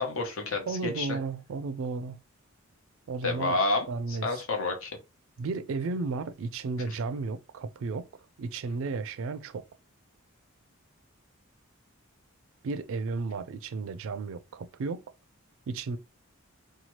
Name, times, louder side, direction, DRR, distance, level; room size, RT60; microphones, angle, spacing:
voice 1, 0.0-1.2 3.2-4.9 6.9-7.0, left 3 dB, 65° left, 0.9 m, -30 dB
voice 2, 0.7-2.2 3.1-3.6 3.9-4.4 5.4-8.1 8.4-9.6 12.6-15.0 15.7-16.0, right 4 dB, 65° right, 0.4 m, -33 dB
2.8 x 2.3 x 3.0 m
head